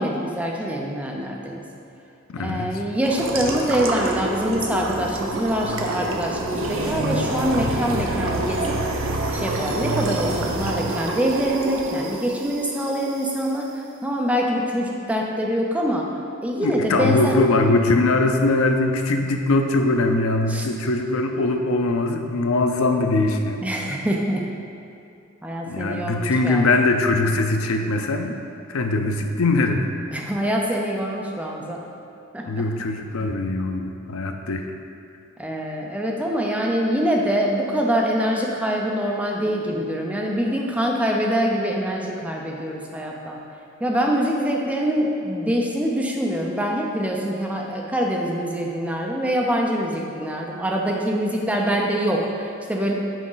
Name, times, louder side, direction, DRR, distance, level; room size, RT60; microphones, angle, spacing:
voice 1, 0.0-1.6 2.4-8.8 9.3-13.7 14.0-16.1 16.4-17.4 20.5-20.6 23.6-24.4 25.4-26.7 30.1-31.8 32.3-32.5 35.4-43.4 43.8-52.9, equal, 5° right, -1 dB, 0.5 m, -24 dB
voice 2, 2.3-2.8 16.6-23.6 25.7-28.4 28.7-29.9 32.5-34.7, left 2 dB, 75° left, 5 dB, 0.5 m, -21 dB
sound 1, 3.0-13.5, right 1 dB, 65° right, 0.6 m, -27 dB
6.2 x 4.7 x 3.9 m, 2.5 s
head